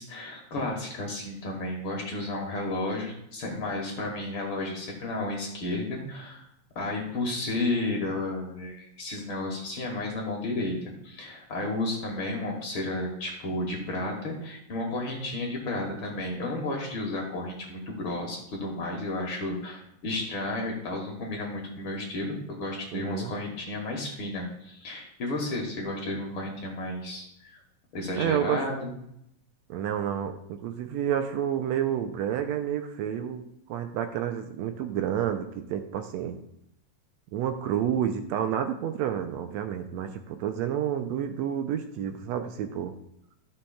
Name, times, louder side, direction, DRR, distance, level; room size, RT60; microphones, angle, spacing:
voice 1, 0.0-6.4 6.8-27.6 27.9-28.9, left 2 dB, 55° left, 0 dB, 1.8 m, -32 dB
voice 2, 22.9-23.3 28.2-28.7 29.7-33.4 33.7-36.4 37.3-42.9, right 9 dB, 80° right, 7 dB, 1.8 m, -29 dB
13.0 x 7.0 x 2.3 m, 0.77 s
omnidirectional pair, 3.3 m